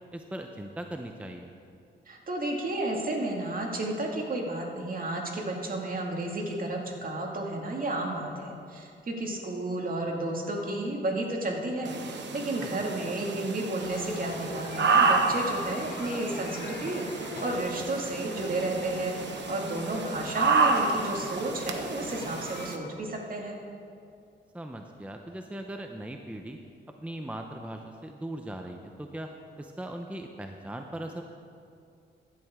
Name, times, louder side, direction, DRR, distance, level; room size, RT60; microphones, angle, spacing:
voice 1, 0.1-1.5 12.6-12.7 24.5-26.6 27.0-31.2, right 1 dB, 5° right, 4 dB, 0.7 m, -39 dB
voice 2, 2.1-23.6, right 2 dB, 45° right, 0 dB, 2.1 m, -32 dB
sound 1, 11.8-22.8, right 4 dB, 65° right, 1.0 m, -30 dB
sound 2, 13.8-22.7, left 2 dB, 50° left, 2.0 m, -42 dB
15.5 x 11.0 x 3.6 m, 2.5 s
cardioid pair, 90°, 20 cm